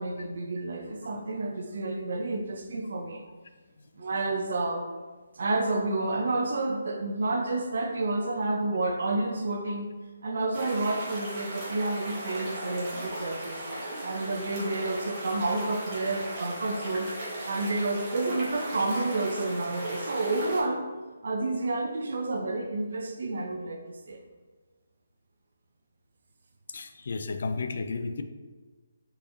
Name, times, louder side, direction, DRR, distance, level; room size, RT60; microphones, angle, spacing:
voice 1, 0.0-3.2 4.0-4.9 5.4-9.9 10.2-13.6 14.0-20.8 21.2-24.2, right 2 dB, 60° right, 4 dB, 0.5 m, -30 dB
sound 1, 10.5-20.6, right 1 dB, 30° right, 1.1 m, -37 dB
voice 2, 26.7-28.2, left 4 dB, 55° left, 8 dB, 0.3 m, -33 dB
3.6 x 3.2 x 2.6 m, 1.4 s
figure-of-eight pair, 145°, 0 cm